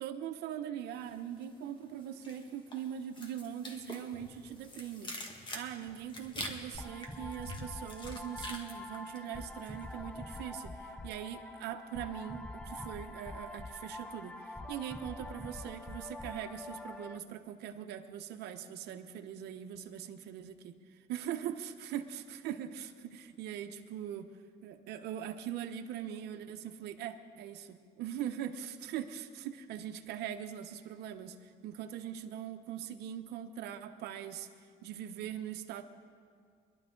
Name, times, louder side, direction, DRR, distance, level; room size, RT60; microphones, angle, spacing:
voice 1, 0.0-5.1 5.5-24.3 24.6-34.5 34.8-35.8, right 10 dB, 80° right, 6 dB, 0.9 m, -41 dB
sound 1, 1.0-1.7 2.0-9.8 10.1-10.5, left 1 dB, 30° left, 1.8 m, -46 dB
sound 2, 6.7-17.2, left 1 dB, 5° left, 0.6 m, -45 dB
22.5 x 11.5 x 3.8 m, 2.1 s
cardioid pair, 110°, 17 cm